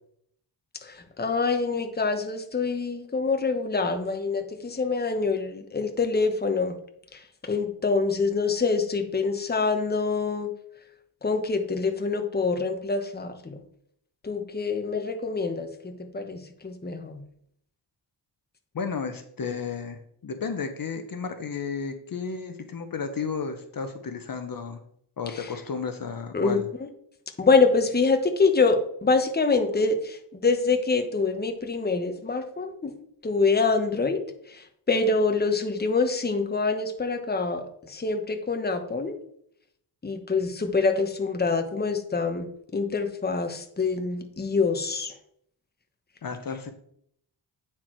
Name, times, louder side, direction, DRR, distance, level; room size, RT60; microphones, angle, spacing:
voice 1, 0.8-6.8 7.1-10.5 11.2-13.6 14.2-17.2 25.3-25.5 26.3-26.9 27.4-32.9 33.2-34.2 34.5-39.2 40.0-42.5 42.7-45.2, left 4 dB, 20° left, 6 dB, 1.1 m, -25 dB
voice 2, 18.7-24.8 25.2-26.7 46.2-46.7, left 5 dB, 50° left, 7 dB, 1.0 m, -33 dB
9.5 x 4.5 x 4.5 m, 0.69 s
cardioid pair, 85°, 43 cm